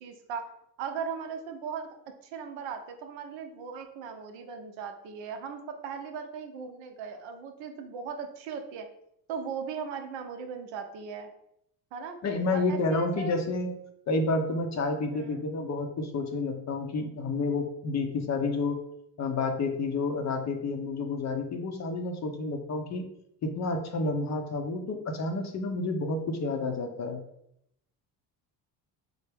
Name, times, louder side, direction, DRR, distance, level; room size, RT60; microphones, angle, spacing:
voice 1, 0.0-0.5 0.8-2.0 2.2-8.9 9.3-11.3 11.9-12.2 12.5-13.4 15.1-15.5, right 6 dB, 65° right, 6 dB, 0.7 m, -38 dB
voice 2, 12.2-13.8 14.1-18.8 19.2-23.0 23.4-27.2, left 3 dB, 35° left, 6 dB, 0.5 m, -30 dB
3.4 x 2.0 x 3.3 m, 0.75 s
hypercardioid pair, 55°, 50 cm